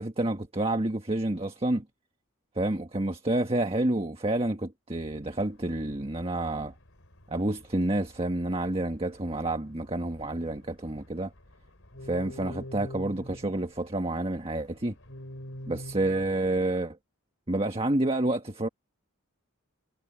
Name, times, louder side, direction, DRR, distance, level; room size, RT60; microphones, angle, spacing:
voice 1, 0.0-1.8 2.5-6.7 7.3-11.3 12.0-14.9 15.7-17.0 17.5-18.7, right 1 dB, 25° right, 1.6 m, -29 dB
sound 1, 5.3-16.8, left 1 dB, 60° left, 4.8 m, -47 dB
head